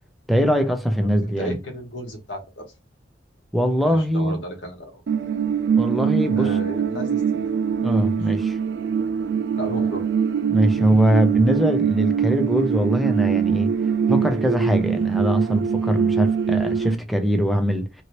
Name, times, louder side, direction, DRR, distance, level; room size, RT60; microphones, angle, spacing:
voice 1, 0.3-1.5 3.5-4.4 5.8-6.6 7.8-8.6 10.5-13.7 14.1-18.0, equal, ahead, 0.4 m, -22 dB
voice 2, 1.2-2.6 3.9-5.0 6.3-7.4 9.5-10.0 10.7-10.8, equal, 85° left, 1.4 m, -33 dB
sound 1, 5.1-16.9, right 7 dB, 65° right, 0.4 m, -22 dB
2.9 x 2.6 x 2.9 m
head